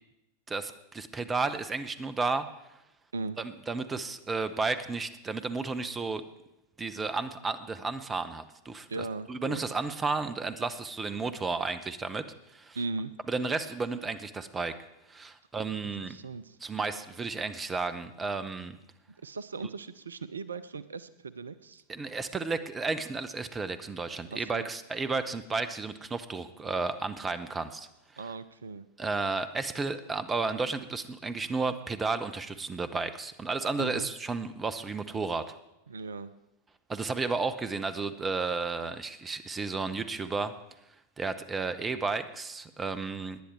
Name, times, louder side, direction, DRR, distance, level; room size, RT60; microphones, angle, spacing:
voice 1, 0.5-2.5 3.4-6.2 6.8-12.3 12.5-12.8 13.3-14.8 15.1-16.2 16.6-18.8 21.9-27.9 28.1-28.3 29.0-35.5 36.9-40.6 41.2-43.4, right 4 dB, 15° right, 12 dB, 0.8 m, -33 dB
voice 2, 8.9-9.6 12.8-13.1 16.1-16.6 19.2-21.1 21.3-21.8 24.3-24.7 28.2-28.8 33.8-34.1 35.9-36.3, right 3 dB, 70° right, 16 dB, 0.5 m, -37 dB
18.5 x 10.0 x 4.7 m, 0.91 s
figure-of-eight pair, 90°, 0 cm